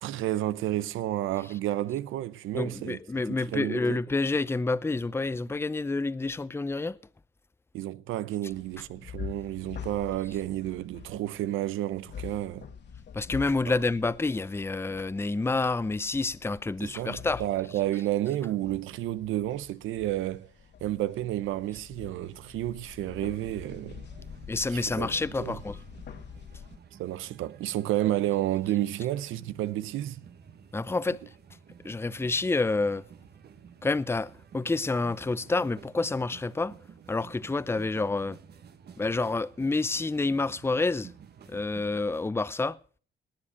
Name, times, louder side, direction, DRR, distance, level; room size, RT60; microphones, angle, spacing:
voice 1, 0.0-3.0 3.3-4.0 7.7-12.7 16.8-20.5 20.8-24.1 24.7-25.1 25.4-25.6 27.0-30.2, right 14 dB, 85° right, 0.8 m, -31 dB
voice 2, 2.5-7.0 13.1-17.4 24.5-25.8 30.7-31.2 31.8-33.0 33.8-36.7 37.1-38.4 39.0-41.1 41.5-42.8, left 3 dB, 10° left, 0.6 m, -28 dB
sound 1, 8.5-26.8, left 7 dB, 60° left, 2.3 m, -46 dB
sound 2, 23.0-42.3, right 7 dB, 55° right, 1.5 m, -52 dB
19.5 x 7.4 x 6.3 m
cardioid pair, 90°, 20 cm